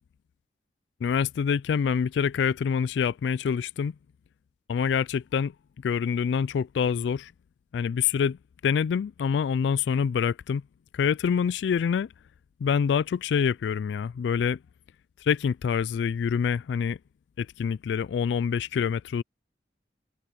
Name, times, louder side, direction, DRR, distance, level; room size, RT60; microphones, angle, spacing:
voice 1, 1.0-3.9 4.7-7.3 7.7-10.6 10.9-12.1 12.6-14.6 15.2-17.0 17.4-19.2, left 7 dB, 75° left, 0.3 m, -26 dB
open air
head